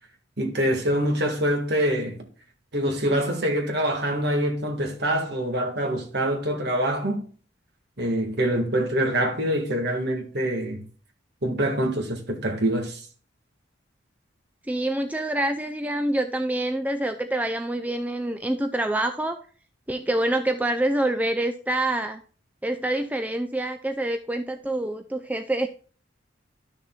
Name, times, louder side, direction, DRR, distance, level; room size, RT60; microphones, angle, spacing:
voice 1, 0.4-2.3 2.7-7.2 8.0-10.9 11.4-13.0, right 1 dB, 60° right, 1.8 m, -25 dB
voice 2, 14.7-19.4 19.9-22.2 22.6-25.7, right 1 dB, 10° right, 0.5 m, -26 dB
12.0 x 6.5 x 2.3 m
head